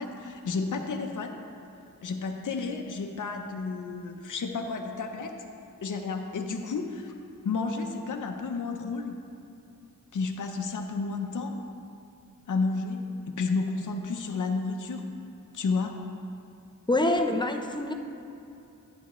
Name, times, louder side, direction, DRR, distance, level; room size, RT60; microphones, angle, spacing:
voice 1, 0.0-1.4 2.0-5.3 5.8-7.1 7.4-9.2 10.1-11.7 12.5-15.1 15.5-15.9, left 4 dB, 65° left, 3 dB, 0.7 m, -31 dB
voice 2, 16.9-17.9, left 1 dB, 15° left, 4 dB, 0.6 m, -25 dB
11.0 x 8.3 x 3.1 m, 2.7 s
wide cardioid pair, 65°, 33 cm